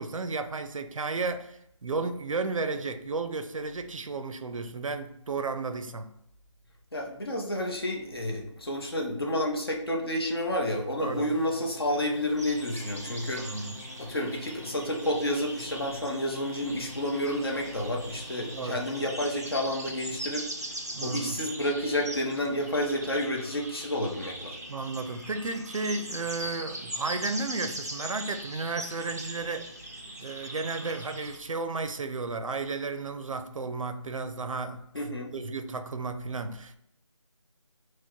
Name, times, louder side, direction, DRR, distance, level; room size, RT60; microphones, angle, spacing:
voice 1, 0.0-6.2 11.0-11.3 13.3-13.8 18.5-18.8 20.9-21.4 24.7-29.7 30.2-34.8 35.3-36.8, right 3 dB, 85° right, 0.5 m, -33 dB
voice 2, 6.9-13.7 14.0-24.6 34.9-35.3, left 1 dB, 50° left, 0.9 m, -30 dB
sound 1, 11.0-19.0, left 3 dB, 85° left, 0.8 m, -49 dB
sound 2, 12.4-31.4, right 1 dB, 30° right, 0.4 m, -40 dB
4.5 x 2.2 x 4.5 m
figure-of-eight pair, 180°, 16 cm